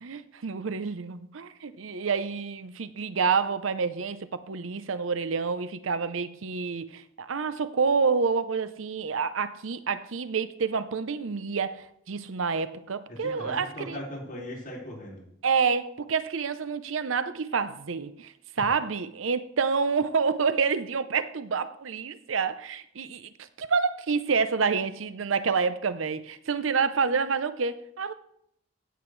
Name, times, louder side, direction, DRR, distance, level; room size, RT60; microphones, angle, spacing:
voice 1, 0.0-14.0 15.4-28.1, right 5 dB, 85° right, 0.7 m, -28 dB
voice 2, 13.2-15.2 18.6-18.7, left 1 dB, 45° left, 4.7 m, -39 dB
16.0 x 7.9 x 3.3 m
head